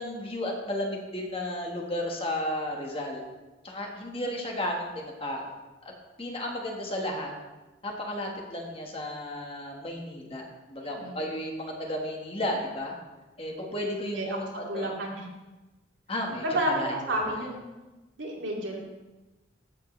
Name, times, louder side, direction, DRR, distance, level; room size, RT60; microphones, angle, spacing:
voice 1, 0.0-3.2 3.6-5.5 5.8-5.9 6.2-7.3 7.8-12.9 13.4-14.5 14.7-14.9 16.1-17.4, left 1 dB, 30° left, 0 dB, 1.4 m, -33 dB
voice 2, 10.8-11.2 14.0-15.3 16.4-17.6 18.2-18.8, right 1 dB, 80° right, -3 dB, 2.5 m, -31 dB
14.0 x 7.4 x 3.2 m, 1.1 s
head